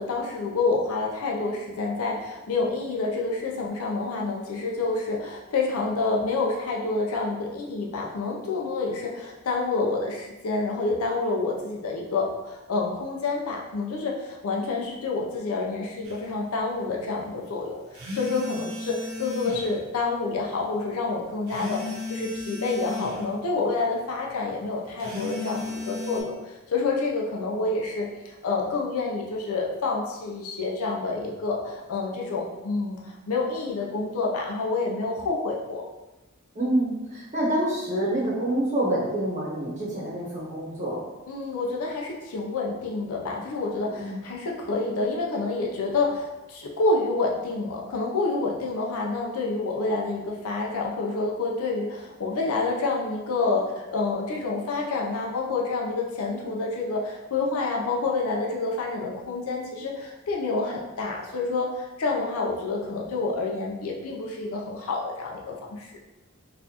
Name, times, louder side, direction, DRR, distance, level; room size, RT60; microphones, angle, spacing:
voice 1, 0.0-35.8 41.3-65.9, left 3 dB, 80° left, -1 dB, 0.5 m, -28 dB
sound 1, 16.0-16.2 17.9-19.7 21.5-23.2 25.0-26.2, left 2 dB, 85° right, 0.9 m, -34 dB
voice 2, 36.5-41.0 43.9-44.2, right 1 dB, 35° right, -7 dB, 0.9 m, -27 dB
4.0 x 2.5 x 2.8 m, 1.1 s
head